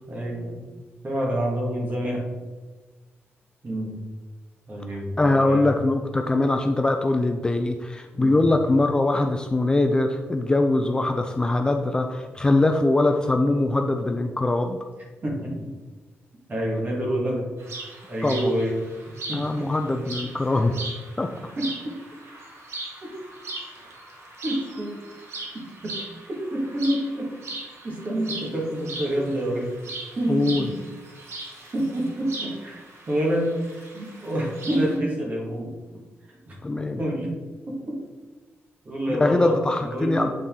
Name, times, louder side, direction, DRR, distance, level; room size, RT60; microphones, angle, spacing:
voice 1, 0.1-0.7 1.0-2.3 3.6-4.0 4.7-5.7 8.1-8.4 15.2-15.7 16.5-17.5 18.1-18.8 19.3-19.7 21.6-21.7 24.4-25.0 25.5-26.0 26.3-27.3 27.8-29.7 30.2-30.8 31.7-35.7 36.3-36.6 37.0-37.4 37.7-38.0 38.9-40.3, right 1 dB, 35° right, -2 dB, 1.8 m, -27 dB
voice 2, 5.2-14.8 18.2-18.5 19.3-20.8 21.2-21.3 30.3-30.7 36.6-37.0 39.1-40.3, left 2 dB, 20° left, 5 dB, 0.4 m, -22 dB
sound 1, 17.6-35.0, right 2 dB, 75° right, 1.4 m, -39 dB
7.8 x 4.1 x 3.7 m, 1.3 s
wide cardioid pair, 140°, 5 cm